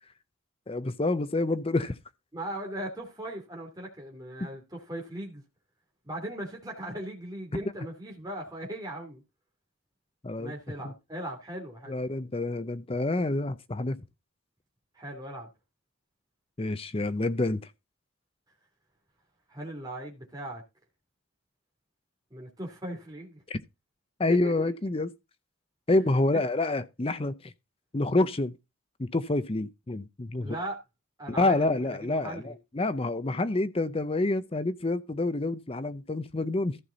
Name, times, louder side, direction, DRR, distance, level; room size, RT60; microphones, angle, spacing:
voice 1, 0.7-2.0 10.2-10.5 10.8-10.9 11.9-14.0 16.6-17.6 23.5-23.6 24.2-25.1 25.9-27.5 27.9-28.5 29.0-30.6 31.3-36.8, left 2 dB, 25° left, 0.6 m, -28 dB
voice 2, 2.3-5.4 6.0-9.2 10.4-12.0 14.9-15.5 19.5-20.6 22.3-23.4 24.3-24.7 25.9-26.0 30.4-30.8 31.2-32.5, right 1 dB, 20° right, 2.8 m, -38 dB
14.5 x 5.8 x 4.0 m
head